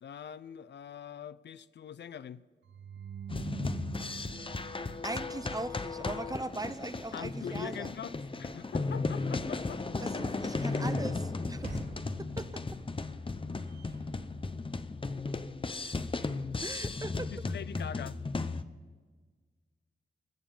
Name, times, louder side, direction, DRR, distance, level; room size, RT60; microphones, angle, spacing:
voice 1, 0.0-2.4 7.1-9.8 10.3-10.4 17.3-18.2, left 8 dB, 75° left, 0.4 m, -43 dB
sound 1, 2.6-5.8, right 8 dB, 90° right, 0.5 m, -45 dB
sound 2, 3.3-18.6, left 3 dB, 30° left, 0.7 m, -35 dB
voice 2, 5.0-7.9 10.0-11.9 12.2-12.6 16.6-17.3, right 2 dB, 20° right, 0.7 m, -39 dB
Sliding door / Slam, 8.2-15.2, right 2 dB, 55° right, 2.7 m, -51 dB
20.5 x 7.2 x 5.5 m
cardioid pair, 65°, 18 cm